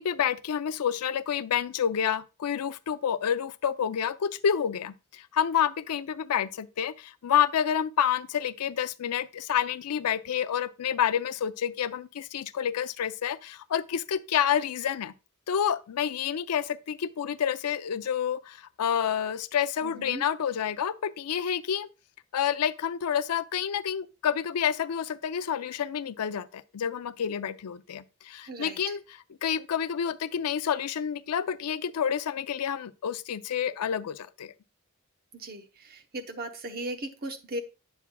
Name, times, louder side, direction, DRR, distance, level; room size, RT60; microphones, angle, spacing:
voice 1, 0.0-15.1 15.5-21.9 22.3-34.5, left 8 dB, 90° left, 0.4 m, -29 dB
voice 2, 19.8-20.2 28.5-28.8 35.3-37.6, right 1 dB, 45° right, 0.9 m, -37 dB
8.3 x 7.1 x 2.2 m
head